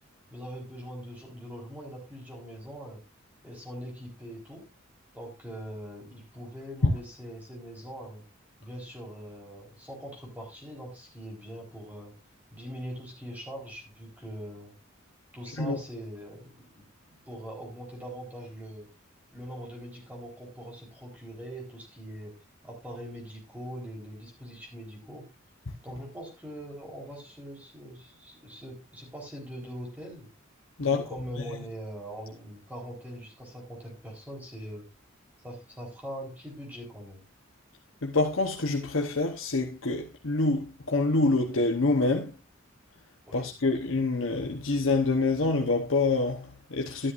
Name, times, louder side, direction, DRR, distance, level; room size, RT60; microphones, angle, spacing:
voice 1, 0.3-3.0 3.4-4.7 5.1-8.2 8.6-12.1 12.5-14.7 15.3-18.9 19.3-22.3 22.6-25.3 25.8-30.3 30.8-34.8 35.4-37.2 43.2-43.5, equal, 10° right, 4.0 m, -42 dB
voice 2, 38.0-42.3 43.3-47.1, left 3 dB, 80° left, 1.0 m, -26 dB
12.5 x 11.0 x 2.5 m
head